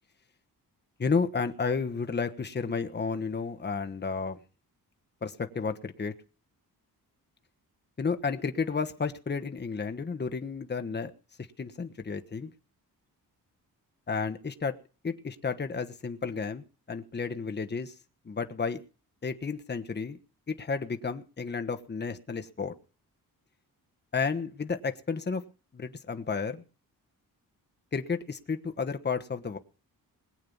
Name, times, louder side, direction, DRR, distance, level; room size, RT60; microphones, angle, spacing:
voice 1, 1.0-4.4 5.2-6.1 8.0-11.1 11.6-12.5 14.1-14.7 15.0-17.9 18.2-18.8 19.2-20.2 20.5-22.7 24.1-25.4 25.7-26.6 27.9-29.6, left 5 dB, 30° left, 7 dB, 1.3 m, -32 dB
21.0 x 8.9 x 5.5 m, 0.37 s
wide cardioid pair, 120°, 37 cm